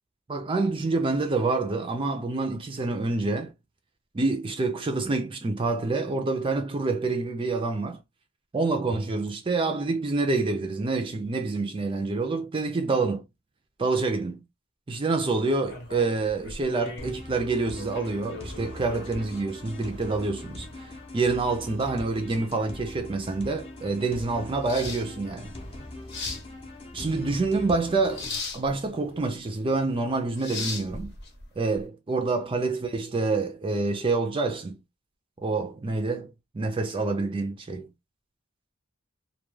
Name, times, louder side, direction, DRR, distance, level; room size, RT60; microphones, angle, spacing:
voice 1, 0.3-3.5 4.1-8.0 8.5-13.2 13.8-14.4 14.9-25.5 26.9-28.3 28.5-31.1 31.6-34.8 35.4-37.9, right 3 dB, 25° right, 0.4 m, -27 dB
sound 1, 15.6-31.8, left 3 dB, 55° left, 0.8 m, -41 dB
sound 2, 17.0-28.4, left 1 dB, 25° left, 0.6 m, -41 dB
2.2 x 2.2 x 3.1 m
head